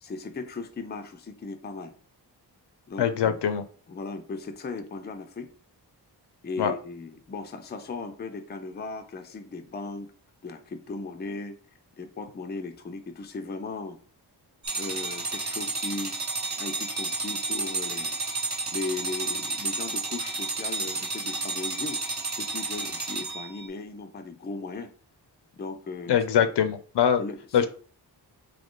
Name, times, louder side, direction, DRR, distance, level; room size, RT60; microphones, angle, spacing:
voice 1, 0.0-1.9 2.9-3.4 3.9-5.5 6.4-10.1 10.4-11.6 12.0-14.0 14.7-16.1 16.6-18.2 18.7-22.0 22.3-24.9 25.5-26.2 27.2-27.7, left 3 dB, 25° left, 7 dB, 0.4 m, -37 dB
voice 2, 3.0-3.6 6.6-6.7 26.1-27.2 27.5-27.7, left 8 dB, 75° left, 10 dB, 0.6 m, -23 dB
sound 1, 14.6-23.7, right 3 dB, 40° right, 0.8 m, -31 dB
3.8 x 2.8 x 3.6 m, 0.42 s
wide cardioid pair, 165°, 41 cm